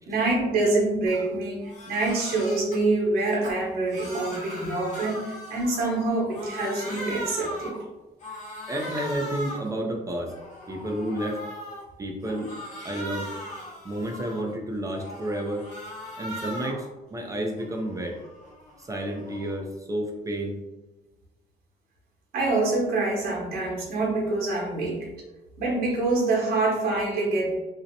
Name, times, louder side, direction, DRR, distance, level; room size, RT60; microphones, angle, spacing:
voice 1, 0.1-7.8 22.3-25.1 25.6-27.6, right 2 dB, 65° right, -2 dB, 1.0 m, -26 dB
Crying sobbing, 1.1-1.3 1.6-2.8 3.2-6.0 6.3-7.8 8.2-9.7 10.2-11.8 12.2-14.5 14.9-16.9 17.3-19.6, equal, 45° left, 0.9 m, -39 dB
voice 2, 8.7-10.3 10.7-11.4 12.0-12.5 12.8-13.3 13.8-15.6 16.2-18.2 18.8-20.6, right 1 dB, 20° right, 1 dB, 0.4 m, -31 dB
2.6 x 2.0 x 2.6 m, 1.1 s
cardioid pair, 110°, 17 cm